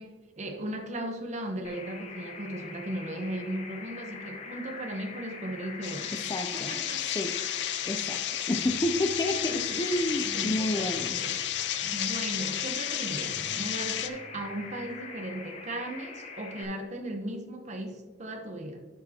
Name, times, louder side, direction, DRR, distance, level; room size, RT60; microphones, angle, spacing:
voice 1, 0.0-6.1 6.5-7.0 9.5-9.8 10.3-11.4 11.9-18.9, right 1 dB, 40° right, 5 dB, 0.9 m, -37 dB
sound 1, 1.6-16.6, left 4 dB, 40° left, 1.0 m, -44 dB
sound 2, 5.8-14.1, left 11 dB, 75° left, 0.5 m, -32 dB
voice 2, 6.3-6.8 7.0-7.3 7.8-8.2 8.5-11.2, left 1 dB, 20° left, 3 dB, 0.5 m, -30 dB
Acoustic guitar, 8.6-12.7 13.3-14.9, equal, 5° left, 2.2 m, -50 dB
10.5 x 6.4 x 2.9 m, 1.3 s
head